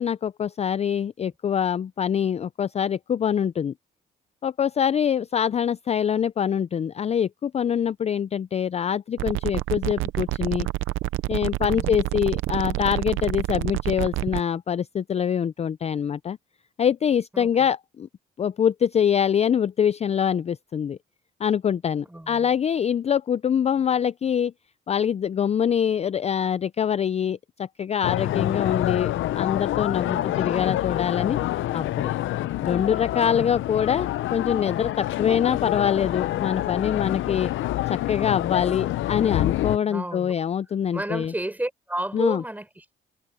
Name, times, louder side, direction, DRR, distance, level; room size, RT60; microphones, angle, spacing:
voice 1, 0.0-3.7 4.4-10.7 11.3-16.4 16.8-18.1 18.4-21.0 21.4-24.5 24.9-31.4 31.7-32.1 32.6-37.5 37.9-41.3 42.1-42.4, left 8 dB, 35° left, 0.4 m, -24 dB
sound 1, 9.2-14.4, right 17 dB, 85° right, 0.6 m, -28 dB
voice 2, 11.6-12.0 17.3-17.7 22.0-22.6 28.3-28.8 30.0-30.4 33.2-33.6 39.9-40.4 40.9-42.9, right 1 dB, 10° right, 5.0 m, -33 dB
sound 2, 28.0-39.8, left 14 dB, 75° left, 0.7 m, -27 dB
cardioid pair, 90°, 20 cm